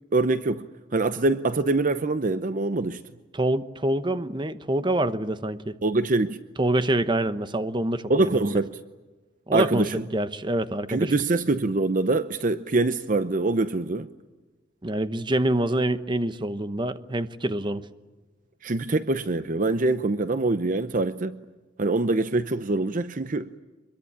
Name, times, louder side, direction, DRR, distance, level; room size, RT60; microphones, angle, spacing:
voice 1, 0.1-0.7 0.9-3.0 5.8-6.4 8.1-8.7 9.5-10.1 10.9-14.1 18.6-21.4 21.8-23.5, right 2 dB, 45° right, 0.7 m, -24 dB
voice 2, 3.3-5.7 6.6-8.6 9.5-11.1 14.8-17.8, right 1 dB, 25° right, 1.0 m, -26 dB
24.5 x 22.5 x 8.8 m
head